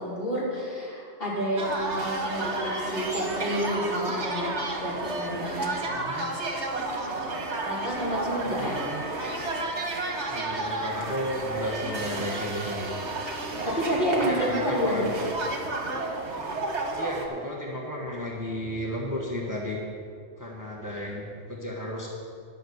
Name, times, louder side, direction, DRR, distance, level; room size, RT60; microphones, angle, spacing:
voice 1, 0.0-4.5 4.8-5.7 7.6-8.8 13.7-15.1, equal, 55° left, -8 dB, 3.9 m, -29 dB
sound 1, 1.6-17.3, right 2 dB, 80° right, 1.8 m, -32 dB
voice 2, 5.8-6.3 8.4-9.0 10.3-13.1 14.1-15.1 17.0-19.8 20.4-22.1, equal, 15° right, -3 dB, 1.3 m, -33 dB
11.5 x 6.2 x 8.0 m, 2.3 s
omnidirectional pair, 1.2 m